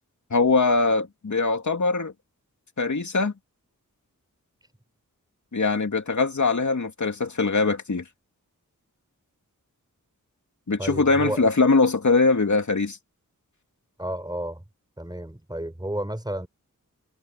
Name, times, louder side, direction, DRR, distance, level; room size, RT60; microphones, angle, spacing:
voice 1, 0.3-2.1 2.8-3.3 5.5-8.0 10.7-13.0, left 3 dB, 60° left, 2.8 m, -22 dB
voice 2, 10.8-11.5 14.0-14.6 15.0-16.5, right 1 dB, 10° right, 4.4 m, -31 dB
wide cardioid pair, 70°, 33 cm